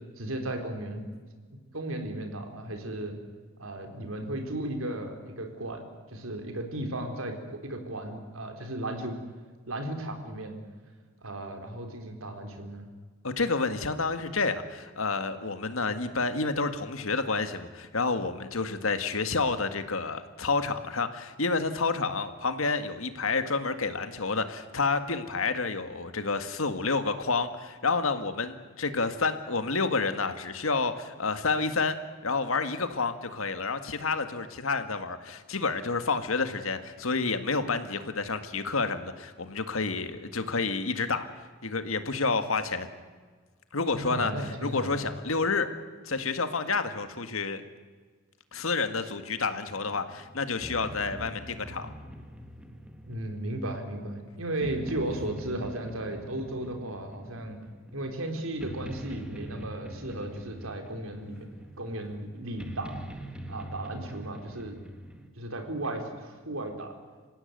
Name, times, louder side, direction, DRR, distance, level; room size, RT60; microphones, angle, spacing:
voice 1, 0.2-1.1 1.7-3.1 3.6-5.8 6.1-9.2 9.7-10.6 11.2-12.9 43.9-45.0 53.1-57.6 57.9-61.5 61.8-63.0 63.5-64.8 65.4-66.9, right 1 dB, 85° right, 5 dB, 4.0 m, -35 dB
voice 2, 13.2-32.0 32.2-41.3 41.6-42.9 43.7-45.7 46.1-47.6 48.5-51.9, left 4 dB, 90° left, 9 dB, 1.9 m, -29 dB
sound 1, 49.7-65.3, right 1 dB, 5° right, 1.8 m, -44 dB
27.5 x 16.0 x 9.4 m, 1.5 s
head